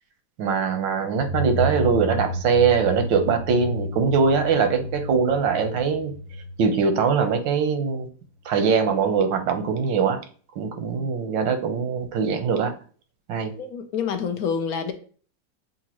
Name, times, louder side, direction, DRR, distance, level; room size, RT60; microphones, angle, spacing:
voice 1, 0.4-6.1 6.6-8.1 8.4-10.2 10.6-12.7 13.3-13.5, right 5 dB, 90° right, 7 dB, 1.5 m, -22 dB
sound 1, 1.1-7.7, equal, 40° left, 1.2 m, -31 dB
voice 2, 13.6-14.9, left 6 dB, 65° left, 7 dB, 1.0 m, -27 dB
7.1 x 2.5 x 2.9 m, 0.41 s
omnidirectional pair, 1.9 m